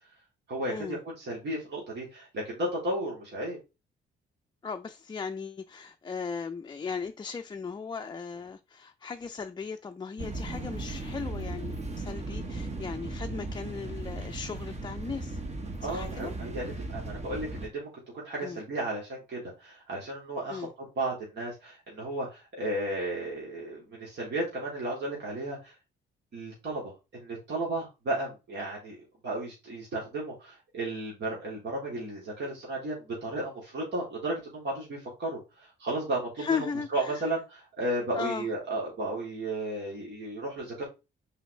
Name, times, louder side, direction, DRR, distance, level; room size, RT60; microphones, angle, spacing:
voice 1, 0.5-3.6 15.8-20.7 21.0-25.7 26.3-29.0 29.2-36.5 36.9-40.8, right 1 dB, 60° right, 3.1 m, -34 dB
voice 2, 4.6-15.4 15.8-16.3 18.4-18.6 20.5-20.7 36.4-37.3 38.1-38.5, left 5 dB, 20° left, 0.5 m, -37 dB
sound 1, 10.2-17.7, right 2 dB, 35° right, 1.3 m, -37 dB
6.0 x 5.0 x 3.2 m
cardioid pair, 90°, 20 cm